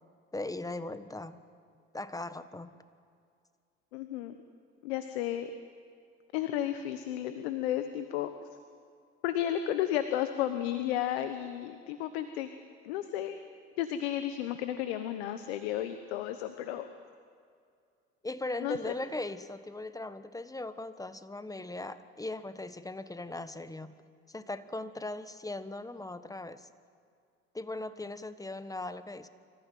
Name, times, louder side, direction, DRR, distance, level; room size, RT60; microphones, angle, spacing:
voice 1, 0.3-1.4 1.9-2.8 18.2-24.0 24.3-26.7 27.5-29.3, left 2 dB, 10° left, 12 dB, 1.4 m, -39 dB
voice 2, 3.9-4.4 4.8-5.5 6.3-8.3 9.2-12.5 12.8-13.4 13.8-16.9 18.6-18.9, left 11 dB, 80° left, 9 dB, 1.1 m, -33 dB
26.0 x 14.5 x 9.2 m, 2.3 s
hypercardioid pair, 70°, 31 cm